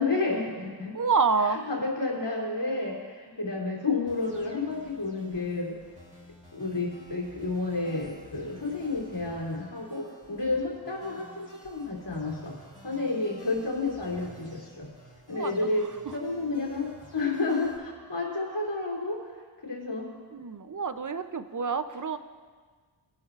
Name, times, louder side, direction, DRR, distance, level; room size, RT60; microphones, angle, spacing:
voice 1, 0.0-1.0 1.7-5.7 6.5-12.5 12.8-14.9 15.3-15.8 16.1-19.2 19.6-20.1, left 3 dB, 65° left, -4 dB, 3.0 m, -30 dB
voice 2, 0.9-1.7 15.3-16.2 20.3-22.2, right 5 dB, 40° right, 10 dB, 0.6 m, -28 dB
sound 1, 4.1-17.8, left 1 dB, 15° right, 3.6 m, -52 dB
19.0 x 11.0 x 2.5 m, 1.5 s
wide cardioid pair, 45°, 47 cm